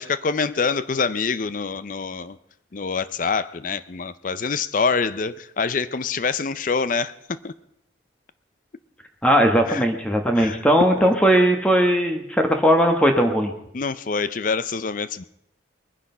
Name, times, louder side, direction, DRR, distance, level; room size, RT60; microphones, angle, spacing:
voice 1, 0.0-2.4 2.7-7.5 9.7-9.8 10.4-10.6 11.0-11.1 13.7-15.2, left 5 dB, 45° left, 15 dB, 0.5 m, -25 dB
voice 2, 9.2-13.5, equal, 5° left, 4 dB, 1.2 m, -18 dB
21.5 x 10.0 x 5.5 m, 0.78 s
head